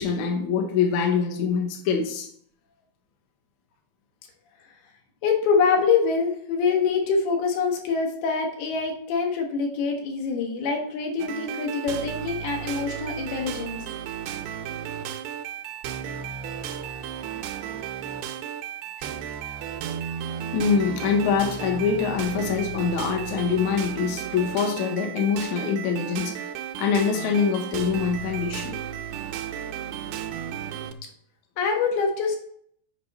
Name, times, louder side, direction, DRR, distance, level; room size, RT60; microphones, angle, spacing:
voice 1, 0.0-2.3 19.0-19.1 20.5-26.5 26.8-28.8, left 6 dB, 65° left, 3 dB, 2.1 m, -24 dB
voice 2, 5.2-13.8 31.6-32.4, left 5 dB, 85° left, 2 dB, 3.3 m, -25 dB
sound 1, 11.2-30.9, right 9 dB, 85° right, 2.6 m, -34 dB
8.1 x 5.3 x 4.2 m, 0.64 s
omnidirectional pair, 4.4 m